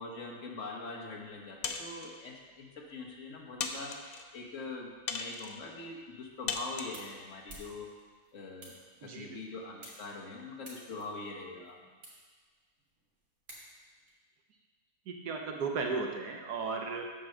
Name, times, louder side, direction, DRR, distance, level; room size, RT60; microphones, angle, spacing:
voice 1, 0.0-7.9 8.3-8.8 9.0-11.8, left 3 dB, 55° left, -2 dB, 1.4 m, -43 dB
sound 1, 1.6-2.2 2.9-3.0 3.6-4.3 5.1-5.6 6.5-7.0, left 5 dB, 75° left, 0.5 m, -37 dB
sound 2, 6.3-14.1, right 1 dB, 50° right, 2.1 m, -55 dB
voice 2, 9.0-9.4 15.1-17.0, right 4 dB, 90° right, 2 dB, 1.5 m, -35 dB
7.4 x 4.6 x 6.5 m, 1.5 s
omnidirectional pair, 1.7 m